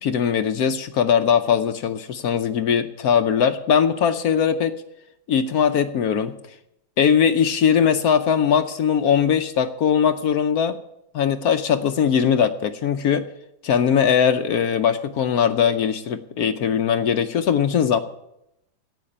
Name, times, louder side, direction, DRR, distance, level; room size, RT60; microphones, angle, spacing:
voice 1, 0.0-4.7 5.3-6.3 7.0-10.8 11.1-13.3 13.6-18.0, left 7 dB, 65° left, 10 dB, 1.0 m, -20 dB
10.5 x 8.6 x 8.6 m, 0.82 s
omnidirectional pair, 2.1 m